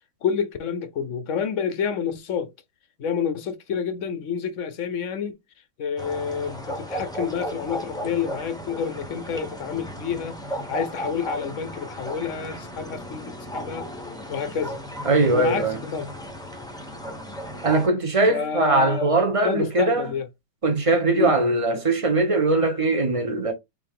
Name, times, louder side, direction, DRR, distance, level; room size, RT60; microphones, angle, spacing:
voice 1, 0.2-2.5 3.0-5.4 5.8-13.9 14.3-14.8 15.3-16.1 18.3-19.1 19.4-20.3 21.1-21.4, left 7 dB, 60° left, 0.9 m, -29 dB
sound 1, 6.0-17.9, equal, 5° left, 0.6 m, -35 dB
voice 2, 15.0-15.8 17.6-20.1 20.6-23.5, right 2 dB, 25° right, 0.8 m, -21 dB
4.7 x 3.2 x 3.6 m
omnidirectional pair, 1.9 m